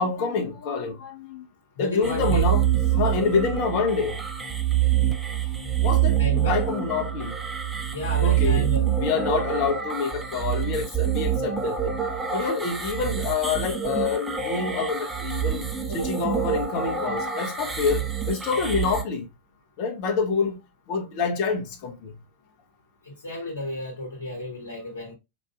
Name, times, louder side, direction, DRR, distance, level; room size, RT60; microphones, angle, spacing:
voice 1, 0.0-1.4 1.8-2.6 2.9-4.2 5.8-6.2 6.5-7.3 8.2-8.7 9.0-12.0 12.3-15.6 15.9-19.3 19.8-20.6 20.9-22.1, left 5 dB, 45° left, 0.9 m, -27 dB
voice 2, 1.8-2.4 6.1-6.6 7.9-8.9 15.9-16.1 23.0-25.1, left 1 dB, 70° left, 1.2 m, -32 dB
sound 1, 2.0-19.0, right 9 dB, 10° right, 0.8 m, -26 dB
5.0 x 2.6 x 2.3 m
figure-of-eight pair, 90°, 0 cm